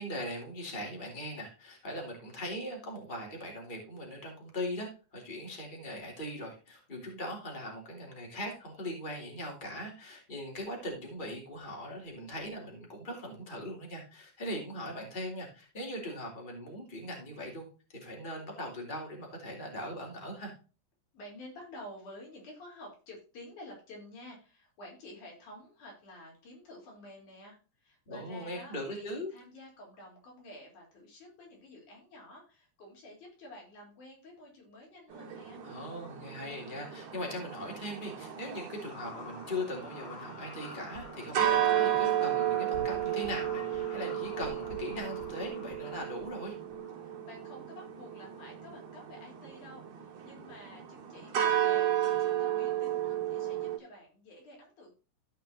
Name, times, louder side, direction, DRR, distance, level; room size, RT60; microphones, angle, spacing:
voice 1, 0.0-17.6 17.9-20.5 28.1-29.3 35.6-46.6, left 1 dB, 15° left, 0 dB, 3.2 m, -40 dB
voice 2, 21.1-35.6 47.0-54.9, left 1 dB, 75° left, -1 dB, 5.3 m, -50 dB
sound 1, 35.1-53.8, right 11 dB, 70° right, 3.3 m, -33 dB
sound 2, 38.8-46.9, left 4 dB, 55° left, 2.0 m, -48 dB
15.5 x 5.6 x 2.8 m, 0.34 s
omnidirectional pair, 3.5 m